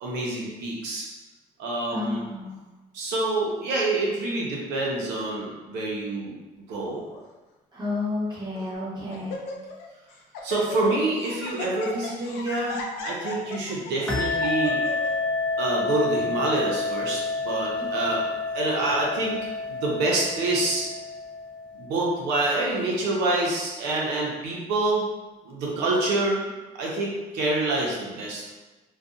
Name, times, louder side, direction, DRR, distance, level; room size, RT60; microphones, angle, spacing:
voice 1, 0.0-1.1 1.6-2.3 2.9-6.3 6.7-7.0 10.4-14.8 15.6-18.2 18.5-19.4 19.7-20.9 21.7-25.0 25.4-26.5 26.7-28.5, right 2 dB, 85° right, -3 dB, 0.7 m, -27 dB
voice 2, 1.9-2.6 7.7-9.4, left 2 dB, 25° right, -6 dB, 0.9 m, -31 dB
Laughter, 6.8-7.2 8.0-8.1 8.6-8.8 9.1-9.9 10.1-15.1, left 3 dB, 80° left, 0.4 m, -37 dB
sound 1, 14.1-22.2, left 3 dB, 5° left, 0.4 m, -29 dB
2.5 x 2.3 x 2.5 m, 1.2 s
cardioid pair, 110°, 17 cm